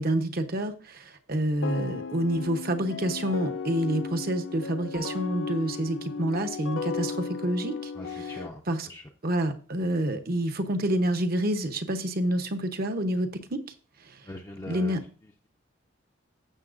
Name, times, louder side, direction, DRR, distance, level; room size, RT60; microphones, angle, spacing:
voice 1, 0.0-8.9 9.2-13.6 14.6-15.0, right 1 dB, 50° right, 0.9 m, -28 dB
sound 1, 1.6-8.5, left 5 dB, 75° left, 0.5 m, -35 dB
voice 2, 8.0-8.6 8.9-9.0 14.2-15.0, left 1 dB, 20° left, 0.5 m, -41 dB
15.5 x 7.0 x 2.5 m
head